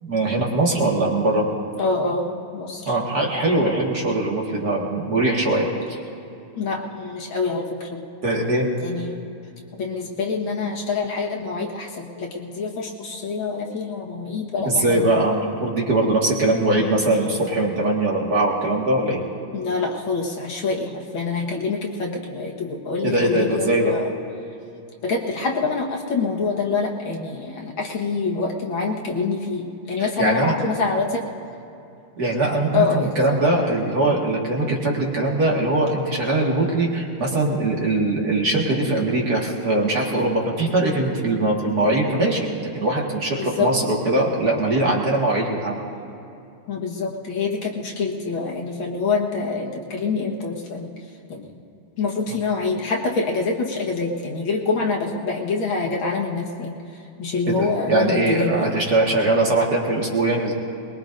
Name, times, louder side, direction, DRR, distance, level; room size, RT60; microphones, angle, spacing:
voice 1, 0.0-1.5 2.9-6.0 8.2-8.7 14.7-19.2 23.0-23.9 30.0-30.6 32.2-42.5 42.7-45.8 57.5-60.5, right 2 dB, 45° right, -2 dB, 2.1 m, -21 dB
voice 2, 1.8-2.8 6.6-8.0 8.8-9.3 9.8-15.0 16.7-16.9 17.2-17.3 19.5-24.1 25.0-31.3 32.7-33.1 43.4-43.7 46.7-50.9 51.3-51.6 52.0-56.8 57.2-58.7, left 4 dB, 65° left, -1 dB, 2.2 m, -26 dB
23.0 x 21.0 x 2.6 m, 2.6 s
omnidirectional pair, 2.4 m